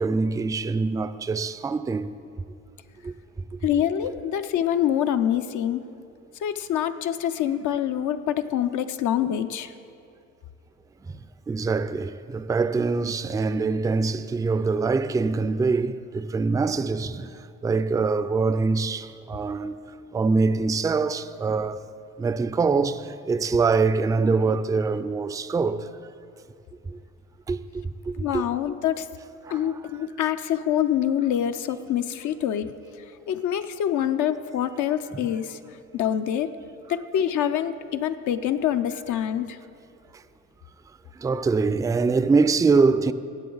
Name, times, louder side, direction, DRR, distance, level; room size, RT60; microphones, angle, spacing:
voice 1, 0.0-2.2 3.0-3.1 9.2-9.3 11.5-19.8 20.1-21.8 22.2-25.9 26.9-27.0 27.5-28.4 29.4-29.8 35.1-35.2 40.1-40.2 41.2-43.1, right 4 dB, 10° right, 0.3 m, -24 dB
voice 2, 3.6-5.8 6.4-9.7 19.6-19.7 28.2-29.1 29.5-32.7 33.3-35.6 35.9-36.5 36.9-39.6, left 10 dB, 75° left, 0.6 m, -25 dB
17.0 x 7.6 x 3.9 m
cardioid pair, 90°, 30 cm